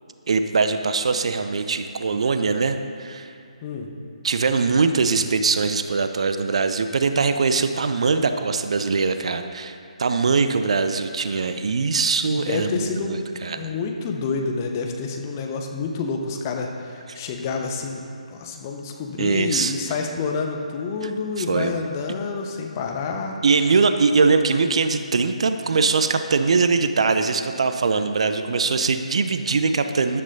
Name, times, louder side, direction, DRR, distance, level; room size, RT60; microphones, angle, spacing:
voice 1, 0.3-3.3 4.2-13.7 17.1-17.2 19.2-19.7 21.0-21.1 21.4-21.7 23.4-30.2, right 4 dB, 55° right, 9 dB, 0.7 m, -22 dB
voice 2, 12.3-13.2 13.5-18.0 18.3-23.4, left 4 dB, 25° left, 2 dB, 1.2 m, -28 dB
13.0 x 11.5 x 4.1 m, 2.5 s
figure-of-eight pair, 145°, 4 cm